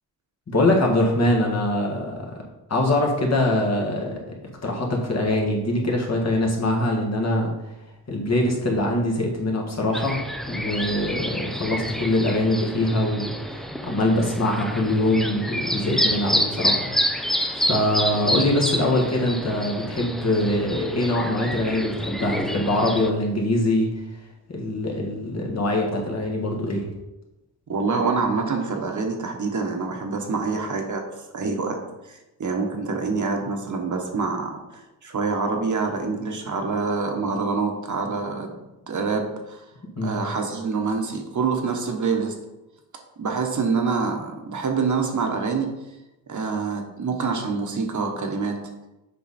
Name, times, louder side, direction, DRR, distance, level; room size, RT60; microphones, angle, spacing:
voice 1, 0.5-2.2 2.7-4.2 4.6-7.5 8.1-10.2 10.5-23.9 24.5-26.9 39.9-40.2, left 1 dB, 40° left, -1 dB, 1.7 m, -23 dB
sound 1, 9.9-23.1, equal, ahead, 0.4 m, -28 dB
voice 2, 27.7-31.0 31.3-31.8 32.1-38.5 38.9-39.6 40.0-42.3 43.2-45.7 46.3-48.6, right 4 dB, 50° right, 3 dB, 1.1 m, -26 dB
7.6 x 5.4 x 4.2 m, 0.99 s
wide cardioid pair, 135°, 39 cm